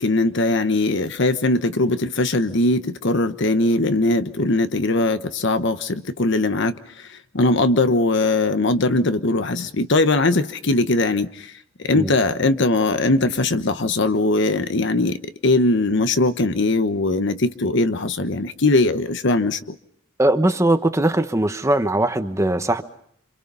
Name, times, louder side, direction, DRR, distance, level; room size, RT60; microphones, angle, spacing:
voice 1, 0.0-6.7 7.3-11.3 11.8-19.6, left 2 dB, 60° left, 1.1 m, -20 dB
voice 2, 20.2-22.8, right 1 dB, 15° right, 1.1 m, -20 dB
28.0 x 26.5 x 5.5 m
head